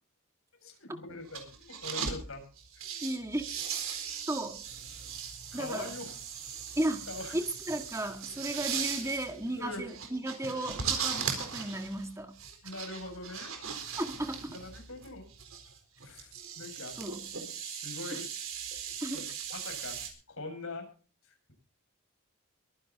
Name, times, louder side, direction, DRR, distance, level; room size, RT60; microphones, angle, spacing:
voice 1, 0.6-2.4 2.7-3.1 5.5-6.2 6.7-6.8 7.1-7.4 9.0-9.9 12.6-13.5 14.5-15.2 16.0-17.0 17.6-18.2 18.8-19.2 19.5-20.8 21.2-21.5, left 2 dB, 75° left, 3 dB, 6.8 m, -43 dB
sound 1, 1.2-2.2 2.6-20.1, right 7 dB, 70° right, 4.1 m, -38 dB
voice 2, 3.0-3.5 4.3-4.6 5.5-5.9 6.8-7.1 7.3-12.3 14.0-14.5 17.0-17.2 19.0-19.2, right 1 dB, 15° right, 6 dB, 1.8 m, -34 dB
23.0 x 10.5 x 4.1 m, 0.39 s
head